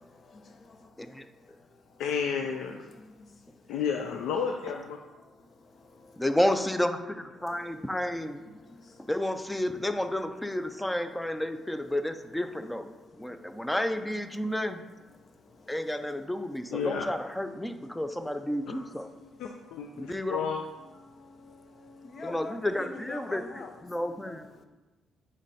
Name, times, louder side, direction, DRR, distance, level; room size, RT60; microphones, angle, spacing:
voice 1, 0.0-2.0 2.9-3.7 5.2-6.2 7.4-9.1 12.9-13.7 14.4-14.5 15.2-15.8 17.9-19.4 19.9-20.1 20.8-24.7, left 3 dB, 45° left, 0.7 m, -49 dB
voice 2, 2.0-2.8 3.7-5.0 16.7-17.1 18.7-18.8 19.4-20.6, left 6 dB, 90° left, 0.4 m, -31 dB
voice 3, 6.2-8.4 9.1-12.9 13.2-14.8 15.7-19.1 20.0-20.5 22.2-24.5, left 1 dB, 5° left, 0.5 m, -31 dB
8.7 x 3.2 x 4.1 m
cardioid pair, 90°, 0 cm